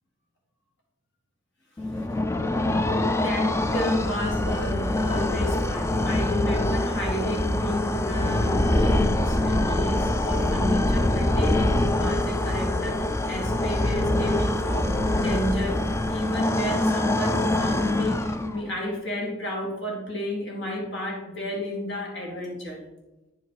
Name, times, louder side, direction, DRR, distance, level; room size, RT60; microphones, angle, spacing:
sound 1, 1.8-18.8, left 1 dB, 15° left, 0.4 m, -24 dB
voice 1, 2.5-2.8 3.2-22.8, left 1 dB, 60° left, -1 dB, 2.7 m, -31 dB
10.0 x 5.0 x 4.7 m, 1.0 s
head